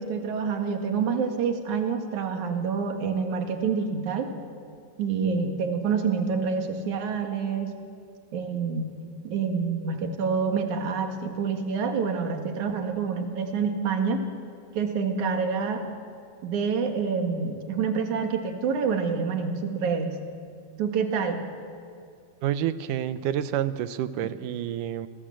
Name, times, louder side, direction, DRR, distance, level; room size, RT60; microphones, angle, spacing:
voice 1, 0.0-4.3 5.0-7.8 8.3-8.9 9.2-14.2 14.7-15.8 16.4-20.2 20.8-21.4 24.2-24.3, right 5 dB, 70° right, 4 dB, 3.3 m, -27 dB
voice 2, 22.4-25.1, right 10 dB, 90° right, 12 dB, 2.4 m, -28 dB
29.5 x 20.5 x 7.6 m, 2.3 s
omnidirectional pair, 3.6 m